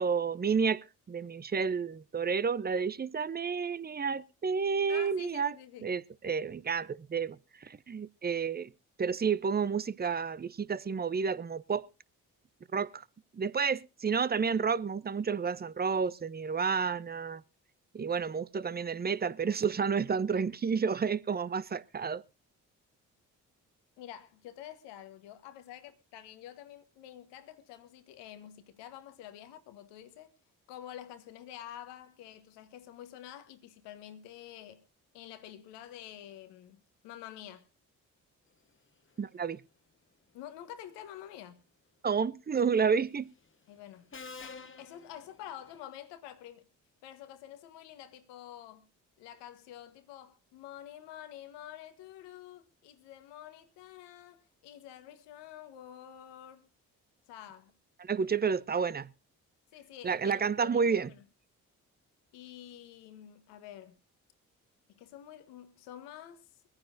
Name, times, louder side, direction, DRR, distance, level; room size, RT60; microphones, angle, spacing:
voice 1, 0.0-5.5 5.8-8.7 9.0-11.9 12.7-13.0 13.3-17.4 17.9-22.2 39.2-39.6 42.0-43.3 58.0-59.1 60.0-61.1, right 6 dB, 25° right, 0.6 m, -30 dB
voice 2, 4.9-5.9 24.0-30.3 30.7-34.8 35.1-37.7 40.3-41.6 43.7-44.1 44.4-46.7 47.0-48.9 49.2-56.7 57.3-57.7 59.7-61.2 62.3-64.0 64.9-66.5, left 11 dB, 75° left, 1.4 m, -48 dB
Subway metro underground, 42.6-43.0 44.1-45.8, left 4 dB, 30° left, 1.3 m, -48 dB
23.5 x 9.7 x 2.6 m
hypercardioid pair, 40°, 43 cm